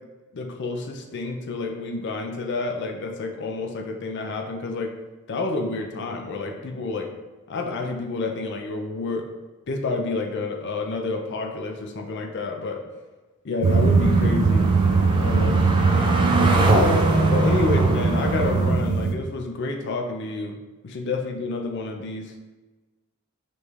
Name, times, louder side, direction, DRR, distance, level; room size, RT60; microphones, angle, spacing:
voice 1, 0.3-4.9 5.3-7.1 7.5-9.3 9.7-12.8 13.4-15.8 16.3-17.0 17.3-20.6 20.8-22.3, left 3 dB, 50° left, 3 dB, 0.4 m, -29 dB
sound 1, 13.6-19.1, right 4 dB, 85° right, 0.4 m, -20 dB
sound 2, 13.7-18.7, right 1 dB, 20° right, 0.4 m, -24 dB
5.0 x 2.4 x 3.1 m, 1.2 s
head